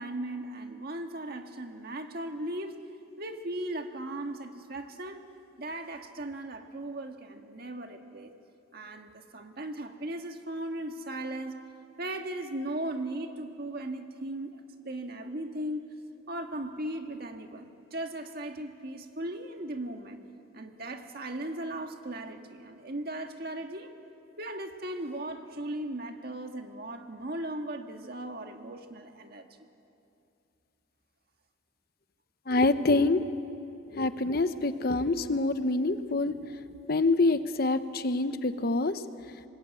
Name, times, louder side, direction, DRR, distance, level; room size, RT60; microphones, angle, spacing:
voice 1, 0.0-2.8 3.2-5.2 5.6-8.3 8.7-11.6 12.0-15.8 16.3-20.2 20.5-23.9 24.4-29.5, right 1 dB, 50° right, 5 dB, 1.7 m, -37 dB
voice 2, 32.5-33.2 33.9-36.4 36.9-39.0, left 2 dB, 50° left, 11 dB, 0.9 m, -26 dB
26.0 x 21.0 x 8.8 m, 2.6 s
head